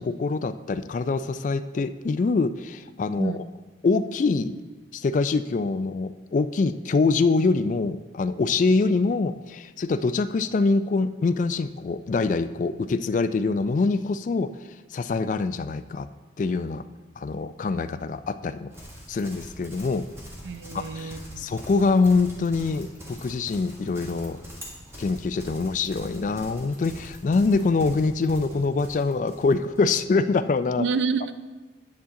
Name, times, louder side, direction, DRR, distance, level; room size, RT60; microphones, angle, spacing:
voice 1, 0.0-3.4 3.8-4.6 4.9-14.5 14.9-16.1 16.4-16.8 17.2-18.7 19.1-20.1 20.7-24.4 25.0-30.9, left 4 dB, 45° left, 12 dB, 0.3 m, -24 dB
Livestock farm animals working animals, 18.7-29.9, equal, 15° right, 1.5 m, -43 dB
voice 2, 20.4-21.5 30.8-31.3, right 4 dB, 80° right, 12 dB, 0.4 m, -28 dB
9.6 x 7.1 x 3.7 m, 1.3 s
head